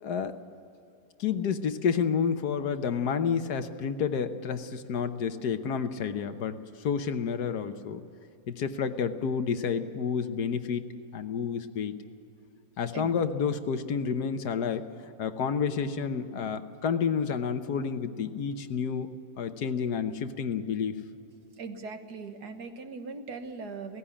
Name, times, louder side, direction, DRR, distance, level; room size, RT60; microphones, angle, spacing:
voice 1, 0.0-0.4 1.2-8.0 8.5-10.9 11.1-11.9 12.8-14.9 15.2-19.1 19.4-20.9, left 6 dB, 60° left, 9 dB, 1.4 m, -30 dB
voice 2, 21.5-24.0, right 4 dB, 60° right, 7 dB, 1.8 m, -40 dB
17.5 x 15.5 x 10.0 m, 2.6 s
omnidirectional pair, 2.0 m